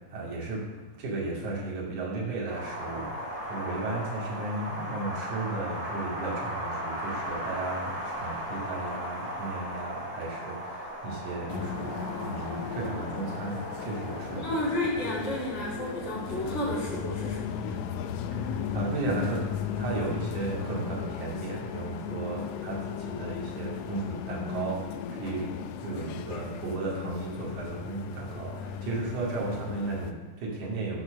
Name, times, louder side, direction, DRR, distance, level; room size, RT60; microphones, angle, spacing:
voice 1, 0.1-0.7 1.0-14.4 18.3-19.5 19.8-24.8 25.2-25.5 25.8-31.0, right 2 dB, 65° right, -5 dB, 3.7 m, -34 dB
Wind, 2.5-16.5, equal, 20° right, 2.4 m, -37 dB
sound 1, 11.5-30.1, left 7 dB, 80° left, 1.7 m, -36 dB
voice 2, 14.4-17.7 25.3-25.4, left 1 dB, 20° left, -6 dB, 2.5 m, -32 dB
7.7 x 6.8 x 6.5 m, 1.3 s
omnidirectional pair, 3.8 m